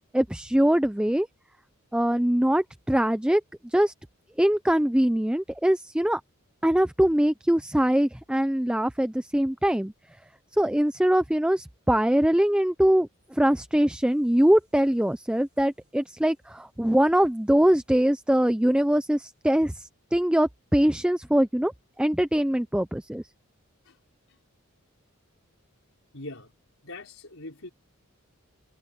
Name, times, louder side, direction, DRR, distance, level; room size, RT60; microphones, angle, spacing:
voice 1, 0.1-1.3 1.9-3.9 4.4-6.2 6.6-9.9 10.6-21.7 22.0-23.2, equal, 5° right, 0.5 m, -23 dB
voice 2, 26.1-26.5 26.8-27.7, left 2 dB, 70° left, 5.4 m, -41 dB
head